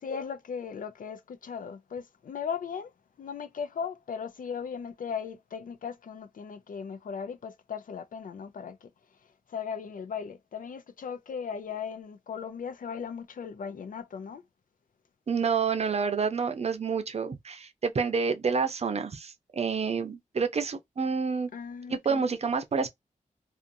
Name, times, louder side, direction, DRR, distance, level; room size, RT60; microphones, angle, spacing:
voice 1, 0.0-2.9 3.2-8.9 9.5-14.4 21.5-22.2, left 6 dB, 85° left, 0.5 m, -37 dB
voice 2, 15.3-21.5 21.9-22.9, right 5 dB, 50° right, 0.6 m, -28 dB
2.5 x 2.4 x 2.6 m
wide cardioid pair, 155°, 14 cm